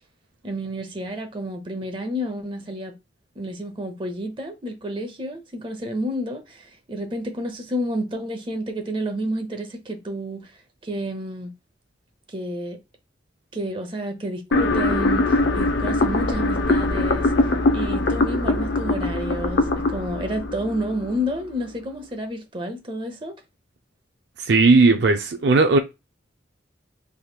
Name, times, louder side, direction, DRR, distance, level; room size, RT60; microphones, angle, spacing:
voice 1, 0.4-2.9 3.4-10.5 10.8-11.5 12.3-12.8 13.5-17.5 17.7-23.3, equal, 30° right, 0.7 m, -30 dB
sound 1, 14.5-21.5, left 2 dB, 70° left, 0.6 m, -22 dB
voice 2, 24.4-25.8, right 3 dB, 65° right, 0.4 m, -16 dB
3.4 x 3.0 x 2.3 m
head